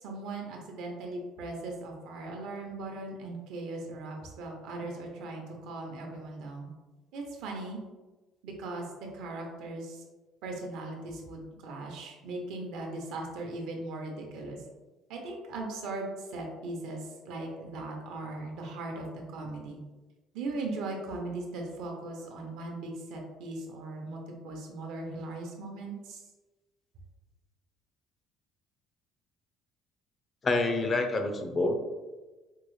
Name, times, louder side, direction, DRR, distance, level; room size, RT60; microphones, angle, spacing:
voice 1, 0.0-6.7 7.1-7.8 8.4-8.8 9.1-10.1 10.4-14.6 15.1-19.8 20.3-26.2, right 2 dB, 80° right, 1 dB, 0.7 m, -38 dB
voice 2, 30.4-31.8, left 2 dB, 30° left, 5 dB, 0.4 m, -27 dB
4.5 x 2.0 x 3.1 m, 1.2 s
cardioid pair, 115°, 0 cm